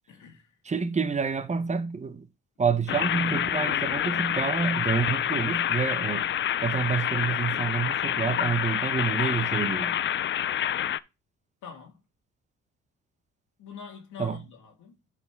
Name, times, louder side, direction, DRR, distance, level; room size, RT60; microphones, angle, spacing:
voice 1, 0.1-0.5 11.6-12.0 13.6-14.9, left 6 dB, 80° left, 2.1 m, -44 dB
voice 2, 0.6-2.3 2.6-6.3 6.6-10.0 14.2-14.4, right 5 dB, 25° right, 0.8 m, -28 dB
sound 1, 2.9-11.0, left 10 dB, 40° left, 0.4 m, -27 dB
11.0 x 4.3 x 3.5 m
cardioid pair, 90°, 30 cm